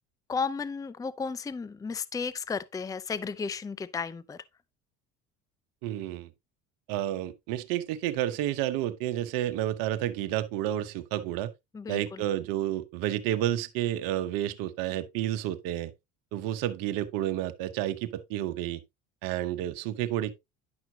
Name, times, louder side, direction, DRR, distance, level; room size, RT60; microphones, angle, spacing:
voice 1, 0.3-4.4 11.7-12.2, left 5 dB, 10° left, 0.5 m, -34 dB
voice 2, 5.8-6.3 6.9-11.5 11.9-15.9 16.3-18.8 19.2-20.3, right 13 dB, 70° right, 1.1 m, -30 dB
10.5 x 5.9 x 2.8 m
supercardioid pair, 85°, 35 cm